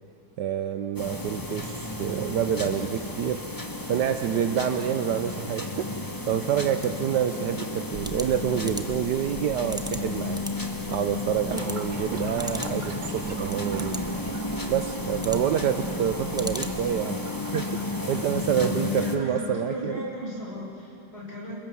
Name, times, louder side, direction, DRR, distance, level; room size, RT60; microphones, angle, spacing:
voice 1, 0.4-3.5 3.9-5.9 6.3-10.4 10.9-14.0 14.7-17.2 17.5-20.1, right 9 dB, 75° right, 8 dB, 1.4 m, -27 dB
sound 1, 1.0-19.2, left 2 dB, 10° left, 1.3 m, -33 dB
sound 2, 7.9-17.1, equal, 5° right, 0.6 m, -41 dB
Toilet flush, 11.5-18.4, right 5 dB, 35° right, 0.9 m, -41 dB
voice 2, 18.6-21.5, left 1 dB, 35° left, -3 dB, 6.7 m, -35 dB
29.5 x 21.5 x 7.1 m, 2.6 s
omnidirectional pair, 1.9 m